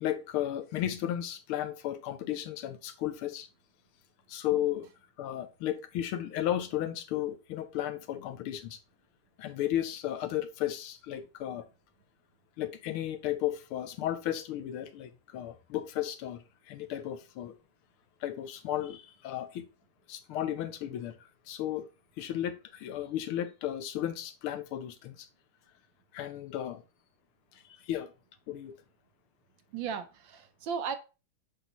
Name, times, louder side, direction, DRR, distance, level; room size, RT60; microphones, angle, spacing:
voice 1, 0.0-3.5 4.3-4.9 5.2-8.8 9.4-11.6 12.6-17.6 18.2-19.7 20.1-21.2 21.5-21.9 22.2-25.3 26.1-26.8 27.8-28.1 28.5-28.8, left 12 dB, 75° left, 1.6 m, -34 dB
voice 2, 29.7-31.0, right 6 dB, 70° right, 1.2 m, -35 dB
6.9 x 5.7 x 3.0 m
omnidirectional pair, 2.4 m